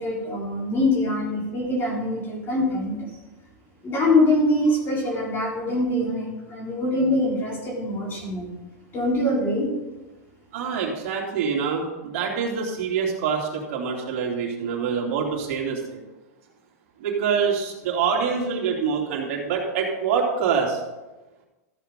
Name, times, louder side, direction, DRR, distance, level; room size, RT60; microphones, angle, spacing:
voice 1, 0.0-3.0 3.8-8.5 8.9-9.7, left 1 dB, 25° left, -2 dB, 4.0 m, -23 dB
voice 2, 10.5-16.0 17.0-20.8, right 6 dB, 50° right, 0 dB, 2.8 m, -25 dB
14.0 x 8.2 x 5.2 m, 1.1 s
supercardioid pair, 145°, 9 cm